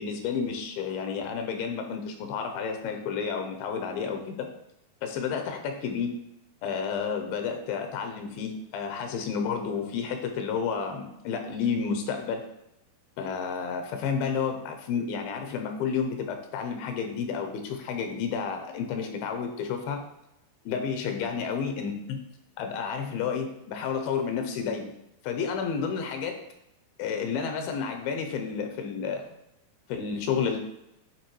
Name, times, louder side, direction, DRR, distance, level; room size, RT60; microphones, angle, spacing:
voice 1, 0.0-4.5 5.0-6.2 6.6-12.4 13.2-20.0 20.7-22.2 22.6-24.9 25.2-26.4 27.0-29.3 29.9-30.6, left 6 dB, 85° left, 5 dB, 2.6 m, -31 dB
9.4 x 4.0 x 3.1 m, 0.85 s
omnidirectional pair, 4.3 m